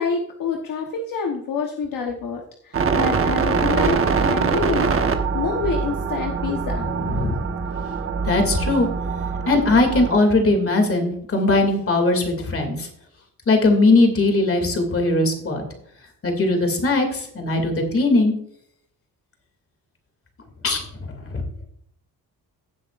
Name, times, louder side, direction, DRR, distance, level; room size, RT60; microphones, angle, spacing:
voice 1, 0.0-6.9, left 5 dB, 60° left, 1 dB, 1.2 m, -27 dB
sound 1, 2.7-10.2, right 5 dB, 35° right, 1.1 m, -23 dB
voice 2, 7.0-7.3 8.2-8.9 9.5-12.9 13.5-15.6 16.2-18.3 20.6-21.4, left 2 dB, 35° left, 4 dB, 2.6 m, -19 dB
16.0 x 7.9 x 2.5 m, 0.70 s
cardioid pair, 125°, 36 cm